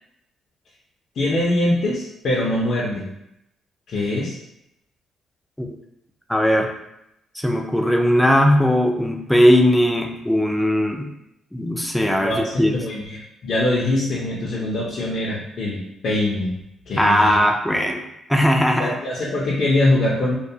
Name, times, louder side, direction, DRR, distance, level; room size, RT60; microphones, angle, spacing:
voice 1, 1.1-3.1 3.9-4.4 12.2-16.6 16.9-17.4 18.8-20.4, left 1 dB, 65° left, -6 dB, 0.5 m, -23 dB
voice 2, 6.3-6.7 7.3-11.1 11.5-12.8 17.0-19.0, equal, 5° left, 2 dB, 0.4 m, -18 dB
2.3 x 2.2 x 2.7 m, 0.83 s
cardioid pair, 90°, 0 cm